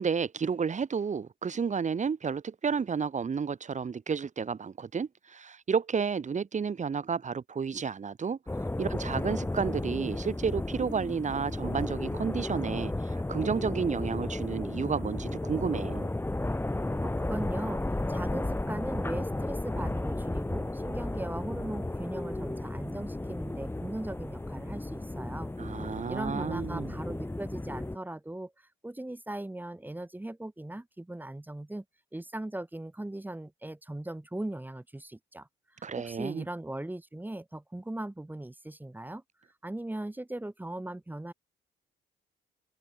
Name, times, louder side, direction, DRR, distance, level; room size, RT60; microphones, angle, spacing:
voice 1, 0.0-8.4 8.8-16.1 25.6-26.9 35.8-36.4, right 6 dB, 35° right, 1.9 m, -31 dB
sound 1, 8.5-28.0, left 2 dB, 10° left, 2.5 m, -34 dB
voice 2, 17.0-31.8 32.1-39.2 39.6-41.3, right 1 dB, 10° right, 1.4 m, -39 dB
cardioid pair, 90°, 20 cm